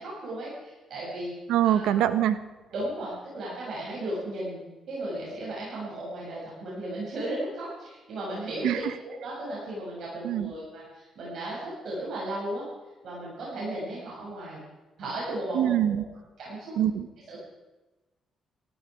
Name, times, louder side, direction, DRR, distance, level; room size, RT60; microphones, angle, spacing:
voice 1, 0.0-1.3 1.6-2.0 2.7-12.6 13.0-14.6 15.0-15.7 16.4-16.7 17.3-17.4, right 1 dB, 65° right, -6 dB, 7.2 m, -35 dB
voice 2, 1.5-2.4 8.6-8.9 10.2-10.5 15.5-16.0 16.8-17.1, right 11 dB, 90° right, 12 dB, 1.1 m, -24 dB
18.5 x 14.5 x 5.0 m, 1.1 s
cardioid pair, 90°, 0 cm